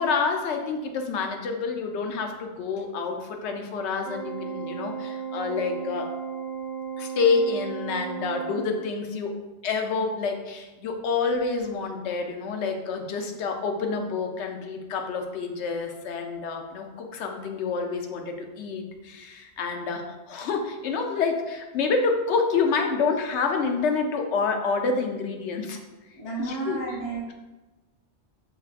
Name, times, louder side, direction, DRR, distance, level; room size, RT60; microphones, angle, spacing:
voice 1, 0.0-6.1 7.0-25.8 26.4-26.8, left 4 dB, 80° left, 4 dB, 0.9 m, -28 dB
Organ, 4.0-9.1, right 6 dB, 55° right, 0.4 m, -35 dB
voice 2, 26.1-27.3, right 4 dB, 25° left, -7 dB, 0.7 m, -32 dB
6.0 x 3.1 x 2.4 m, 1.1 s
omnidirectional pair, 1.2 m